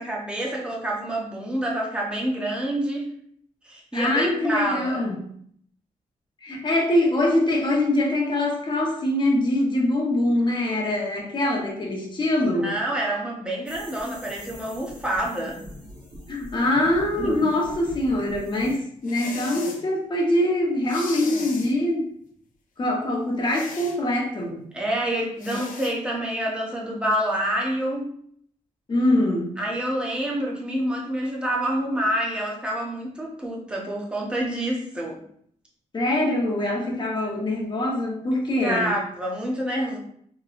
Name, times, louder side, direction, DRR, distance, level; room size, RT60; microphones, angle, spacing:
voice 1, 0.0-3.1 3.6-5.1 12.4-15.6 17.2-17.5 24.7-28.1 29.6-35.2 38.6-40.0, right 1 dB, 5° right, -3 dB, 0.8 m, -27 dB
voice 2, 3.9-5.3 6.4-12.7 16.3-22.1 22.8-24.6 28.9-29.5 35.9-39.0, left 1 dB, 35° left, -1 dB, 0.8 m, -23 dB
sound 1, 13.7-18.8, equal, 35° right, 1.3 m, -43 dB
sound 2, 19.0-19.8 20.9-21.7 23.5-24.0 25.4-25.9, left 4 dB, 85° left, 0.5 m, -37 dB
3.0 x 2.9 x 2.4 m, 0.64 s
cardioid pair, 115°, 13 cm